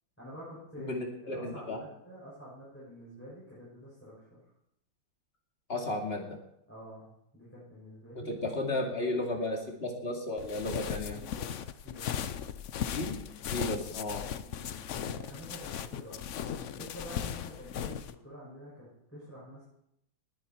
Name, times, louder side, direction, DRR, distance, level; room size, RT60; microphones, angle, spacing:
voice 1, 0.2-4.4 6.7-9.0 9.6-9.7 11.1-11.5 11.8-12.1 14.4-16.2 16.5-19.6, equal, 5° left, -8 dB, 6.5 m, -48 dB
voice 2, 0.8-1.8 5.7-6.4 8.3-11.2 12.9-13.2 13.5-14.2, left 2 dB, 30° left, 0 dB, 2.7 m, -34 dB
sound 1, 10.4-18.1, left 9 dB, 75° left, 0.6 m, -37 dB
19.0 x 10.0 x 4.5 m, 0.80 s
omnidirectional pair, 2.1 m